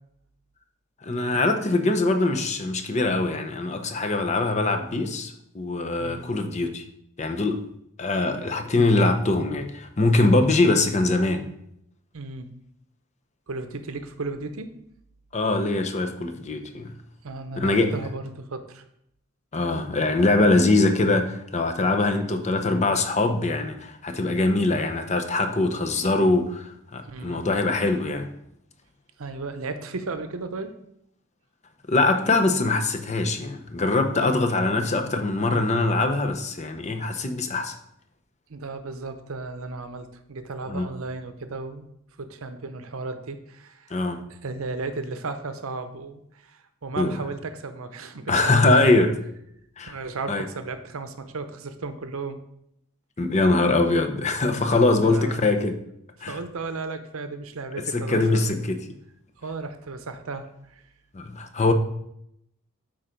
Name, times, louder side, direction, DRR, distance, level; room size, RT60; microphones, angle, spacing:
voice 1, 1.0-6.8 7.2-7.7 8.0-11.5 15.3-16.9 17.6-17.9 19.5-28.3 31.9-37.8 40.7-40.9 43.9-44.2 47.0-47.2 48.3-49.1 49.8-50.0 50.3-50.4 53.2-55.7 56.2-56.4 57.9-58.8 61.1-61.7, left 2 dB, 30° left, 0.7 m, -22 dB
voice 2, 6.0-6.3 12.1-12.5 13.5-14.7 17.2-18.8 27.0-27.5 29.2-30.7 34.2-34.7 38.5-41.9 42.2-43.9 44.3-48.7 49.9-52.4 55.0-55.5 56.3-58.5 59.4-60.8, right 3 dB, 70° right, 0.7 m, -35 dB
8.7 x 3.9 x 5.1 m
head